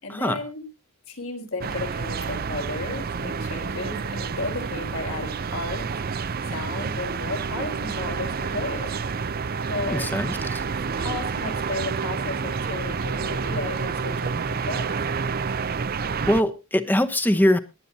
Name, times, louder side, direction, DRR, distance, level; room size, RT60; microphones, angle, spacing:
voice 1, 0.0-0.7 1.1-5.9 6.5-8.9 9.7-10.1 11.0-15.0, left 2 dB, 70° left, 4 dB, 3.9 m, -34 dB
sound 1, 1.6-16.4, right 5 dB, 45° right, 0.5 m, -29 dB
voice 2, 9.9-10.6 16.3-17.6, left 1 dB, 10° left, 10 dB, 0.9 m, -22 dB
22.0 x 9.5 x 2.8 m, 0.27 s
head